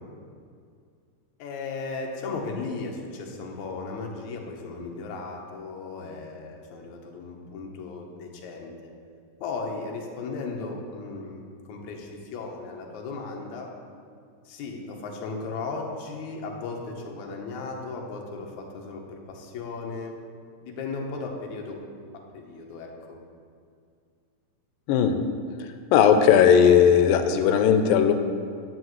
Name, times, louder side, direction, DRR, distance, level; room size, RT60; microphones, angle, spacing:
voice 1, 1.4-8.9 9.4-13.7 14.5-20.1 20.6-21.8 22.1-23.2, left 4 dB, 70° left, 1 dB, 2.2 m, -36 dB
voice 2, 25.6-28.1, left 8 dB, 85° left, 7 dB, 2.3 m, -18 dB
10.5 x 9.4 x 3.1 m, 2.2 s
omnidirectional pair, 4.0 m